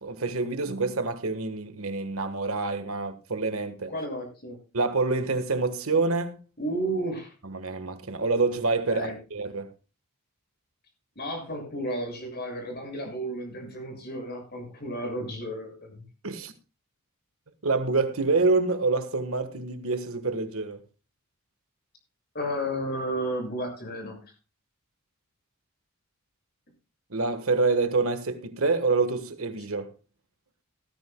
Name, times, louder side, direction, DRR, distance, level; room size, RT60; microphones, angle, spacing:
voice 1, 0.0-3.9 4.7-6.4 7.4-9.7 16.2-16.5 17.6-20.8 27.1-29.9, right 3 dB, 65° right, 1.4 m, -27 dB
voice 2, 3.9-4.6 6.6-7.3 8.9-9.2 11.1-16.0 22.3-24.2, right 1 dB, 45° left, 6.7 m, -32 dB
19.0 x 13.0 x 2.3 m
head